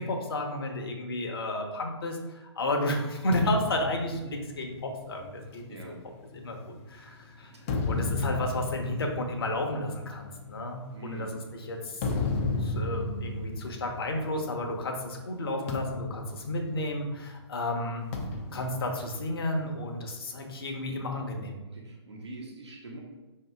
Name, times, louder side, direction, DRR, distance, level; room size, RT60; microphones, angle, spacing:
voice 1, 0.0-5.6 6.3-7.5 7.9-12.0 12.6-18.0 18.5-21.5, left 1 dB, 55° left, 3 dB, 0.8 m, -32 dB
sound 1, 3.3-6.9 7.4-14.9 15.1-15.3 15.7-17.3 18.1-19.9, left 3 dB, 25° left, 0.5 m, -34 dB
voice 2, 10.9-11.3 21.6-23.0, right 3 dB, 65° right, -2 dB, 1.0 m, -43 dB
5.3 x 2.8 x 3.4 m, 1.1 s
figure-of-eight pair, 130°, 15 cm